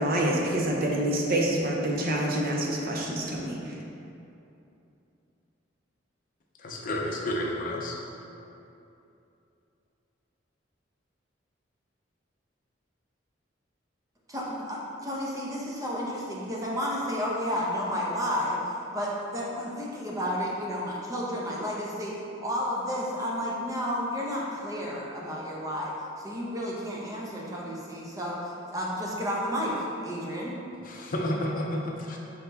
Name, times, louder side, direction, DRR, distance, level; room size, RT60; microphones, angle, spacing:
voice 1, 0.0-3.8, right 1 dB, 50° right, -1 dB, 0.7 m, -27 dB
voice 2, 6.6-8.0 30.8-32.2, left 1 dB, 45° left, 0 dB, 0.6 m, -31 dB
voice 3, 14.3-18.6 18.9-22.1 22.4-30.6, equal, 20° right, -4 dB, 0.9 m, -31 dB
5.4 x 4.4 x 4.0 m, 2.7 s
head